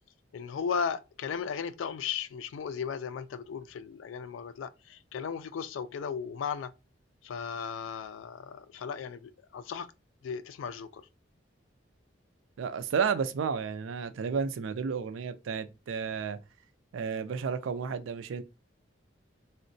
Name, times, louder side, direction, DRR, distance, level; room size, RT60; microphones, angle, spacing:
voice 1, 0.3-6.7 7.2-9.9 10.2-11.0, left 6 dB, 85° left, 0.3 m, -36 dB
voice 2, 12.6-16.4 16.9-18.4, right 6 dB, 90° right, 0.4 m, -32 dB
3.7 x 2.1 x 2.6 m
head